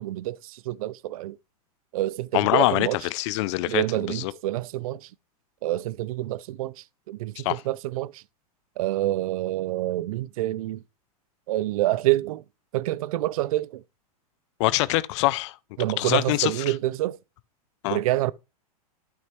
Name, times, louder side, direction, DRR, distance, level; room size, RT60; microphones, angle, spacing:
voice 1, 0.0-1.4 1.9-3.0 3.7-5.1 5.6-8.2 8.8-10.8 11.5-12.4 12.7-13.8 15.8-17.2 17.9-18.3, right 15 dB, 65° right, 0.4 m, -27 dB
voice 2, 2.3-4.3 7.4-7.6 14.6-15.6 16.0-16.7 17.8-18.0, left 19 dB, 50° left, 0.4 m, -24 dB
12.0 x 5.9 x 3.0 m
hypercardioid pair, 120°, 20 cm